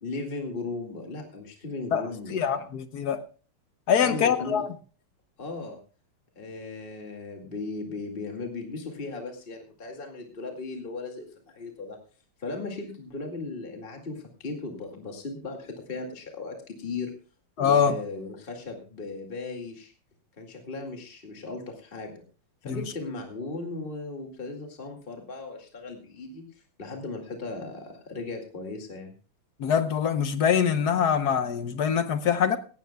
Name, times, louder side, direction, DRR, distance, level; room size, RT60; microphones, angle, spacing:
voice 1, 0.0-2.6 4.0-4.6 5.4-5.8 6.4-12.0 12.4-17.1 17.6-19.9 20.4-22.1 22.6-26.4 26.8-29.1, left 3 dB, 25° left, 2.3 m, -37 dB
voice 2, 2.3-3.2 3.9-4.7 17.6-18.0 22.6-22.8 29.6-32.6, left 7 dB, 60° left, 1.1 m, -24 dB
18.0 x 15.5 x 2.3 m
omnidirectional pair, 2.4 m